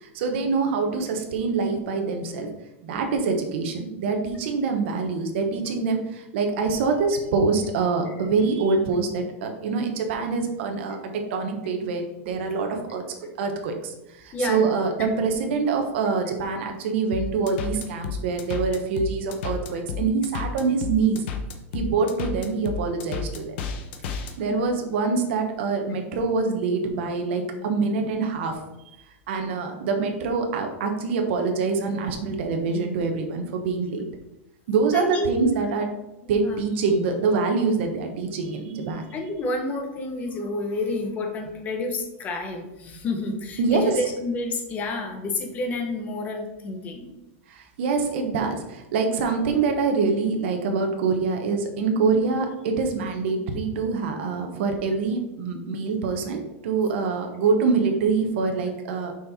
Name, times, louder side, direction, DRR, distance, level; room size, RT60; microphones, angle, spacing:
voice 1, 0.0-2.5 2.8-13.0 13.4-21.2 21.7-23.5 24.1-28.6 29.3-34.1 34.7-35.9 36.3-39.0 43.6-43.9 47.5-59.2, right 4 dB, 60° right, 4 dB, 1.1 m, -25 dB
voice 2, 14.3-15.3 24.0-24.2 24.4-24.7 34.9-35.3 36.2-36.6 39.1-47.1, left 2 dB, 20° left, 3 dB, 1.0 m, -30 dB
sound 1, 17.1-24.3, left 5 dB, 55° left, 0.9 m, -31 dB
6.2 x 4.4 x 4.2 m, 0.96 s
supercardioid pair, 160°, 7 cm